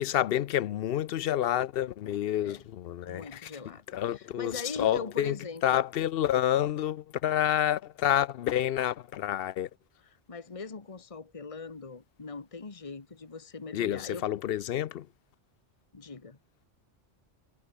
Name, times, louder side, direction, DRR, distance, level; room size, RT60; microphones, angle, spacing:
voice 1, 0.0-3.5 3.9-5.4 5.6-9.7 13.7-15.1, left 11 dB, 65° left, 0.7 m, -28 dB
voice 2, 3.0-5.8 10.0-14.3 15.9-16.4, left 4 dB, 30° left, 1.5 m, -41 dB
omnidirectional pair, 1.2 m